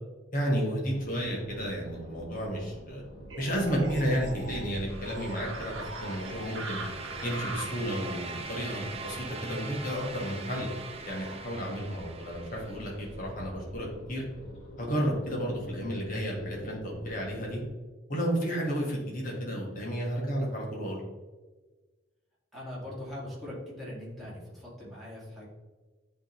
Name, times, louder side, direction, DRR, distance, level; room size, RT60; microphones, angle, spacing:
voice 1, 0.3-3.0 3.4-6.8 7.2-10.7 11.0-14.2 14.8-17.6 18.1-21.0, equal, 45° left, -2 dB, 1.8 m, -32 dB
sound 1, 0.8-17.7, equal, 75° left, 1.7 m, -47 dB
sound 2, 3.3-11.5, right 2 dB, 85° right, 1.1 m, -43 dB
sound 3, 4.3-13.2, right 4 dB, 30° right, 0.5 m, -42 dB
voice 2, 22.5-25.5, left 1 dB, ahead, -7 dB, 2.1 m, -41 dB
9.7 x 3.7 x 3.2 m, 1.3 s
head